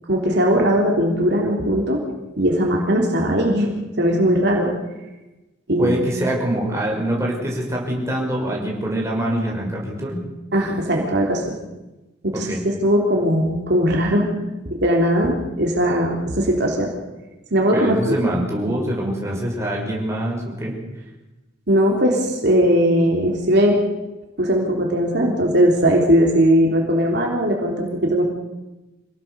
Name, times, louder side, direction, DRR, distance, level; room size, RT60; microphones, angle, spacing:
voice 1, 0.1-2.0 2.4-3.7 4.0-4.7 5.7-6.0 10.5-11.5 12.2-14.3 14.7-16.9 17.5-18.2 21.7-23.8 24.4-28.2, equal, 60° right, 0 dB, 3.5 m, -19 dB
voice 2, 5.8-10.2 12.3-12.7 17.6-20.7, right 1 dB, 15° right, -2 dB, 6.1 m, -24 dB
26.5 x 17.5 x 7.0 m, 1.1 s
head